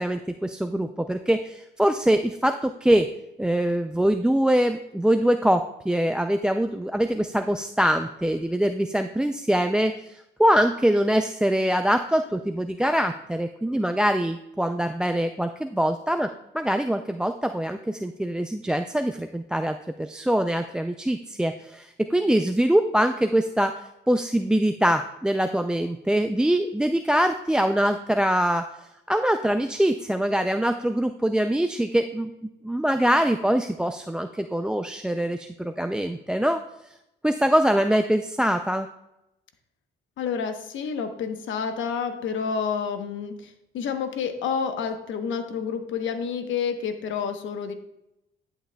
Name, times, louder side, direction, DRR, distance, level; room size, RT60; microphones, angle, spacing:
voice 1, 0.0-3.1 3.4-10.1 10.4-23.8 24.1-28.7 29.1-32.3 32.6-36.6 37.2-38.9, right 1 dB, 5° right, 8 dB, 0.3 m, -23 dB
voice 2, 40.2-47.7, left 6 dB, 75° left, 7 dB, 1.0 m, -29 dB
11.0 x 7.9 x 2.2 m, 0.87 s
cardioid pair, 90°, 20 cm